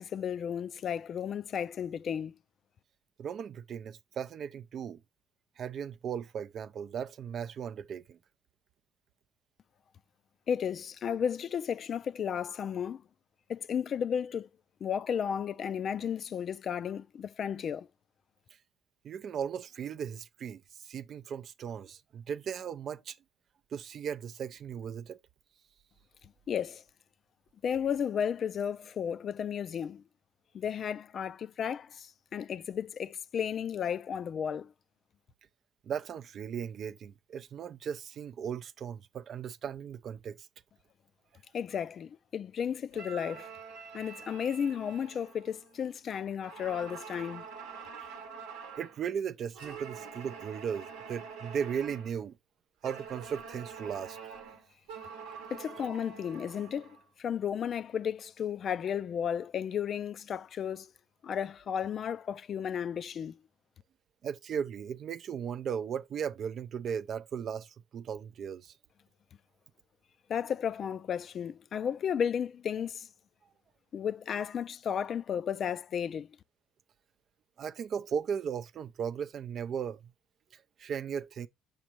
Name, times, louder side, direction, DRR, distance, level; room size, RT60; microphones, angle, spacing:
voice 1, 0.0-2.3 10.5-13.0 13.5-14.5 14.8-17.9 26.5-26.8 27.6-30.0 30.5-34.7 41.5-43.5 43.9-47.4 55.5-60.9 61.2-63.4 70.3-73.1 73.9-76.3, left 8 dB, 50° left, 0.3 m, -33 dB
voice 2, 3.2-5.0 5.6-8.2 19.0-23.2 23.7-25.2 35.8-40.5 48.1-48.4 48.8-52.4 52.8-54.2 64.2-68.7 77.6-80.0 80.5-81.5, right 7 dB, 55° right, 0.4 m, -37 dB
sound 1, 42.9-46.0 46.4-49.0 49.5-52.2 52.8-57.0, right 6 dB, 90° right, 0.9 m, -46 dB
7.1 x 5.1 x 2.9 m
hypercardioid pair, 65°, 0 cm